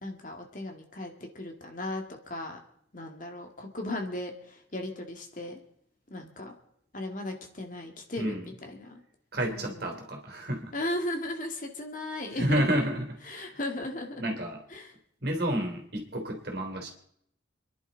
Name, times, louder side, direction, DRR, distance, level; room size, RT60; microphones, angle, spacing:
voice 1, 0.0-2.6 2.9-5.6 6.1-6.5 6.9-9.0 9.5-10.0 10.7-12.8 13.2-14.2 14.7-14.9, left 1 dB, 40° left, 3 dB, 2.2 m, -36 dB
voice 2, 9.3-10.7 12.4-13.5 14.2-14.6 15.2-16.9, right 1 dB, 55° right, 3 dB, 3.2 m, -30 dB
28.0 x 11.0 x 4.0 m, 0.71 s
head